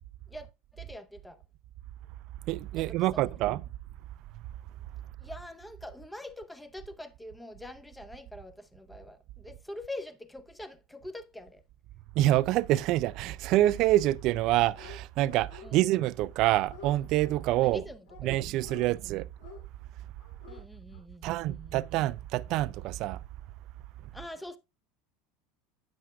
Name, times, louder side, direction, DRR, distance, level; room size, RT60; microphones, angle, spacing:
voice 1, 0.7-1.4 2.7-3.5 5.2-11.6 15.6-15.8 17.6-19.0 20.5-21.8 24.1-24.6, left 1 dB, 5° left, 0.7 m, -44 dB
voice 2, 2.5-3.6 12.2-17.8 18.2-19.3 21.2-23.2, right 15 dB, 55° right, 0.3 m, -26 dB
Dog, 14.5-15.0 15.3-16.1 16.3-17.4 18.1-18.9 19.4-19.6 20.2-20.6 20.9-21.0, left 6 dB, 80° left, 2.7 m, -50 dB
9.5 x 7.6 x 2.4 m
supercardioid pair, 130°, 0 cm